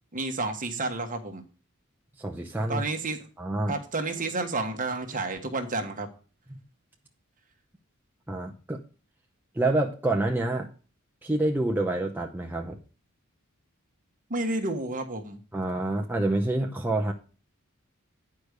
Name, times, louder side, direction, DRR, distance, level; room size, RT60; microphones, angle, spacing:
voice 1, 0.1-1.4 2.7-3.2 3.7-6.1 14.3-15.4, right 2 dB, 40° right, 5 dB, 1.4 m, -30 dB
voice 2, 2.2-2.8 3.4-3.8 6.5-6.6 8.3-8.8 9.5-10.7 11.2-12.8 15.5-17.1, right 2 dB, 10° right, 1 dB, 0.7 m, -27 dB
9.9 x 4.8 x 6.6 m, 0.37 s
head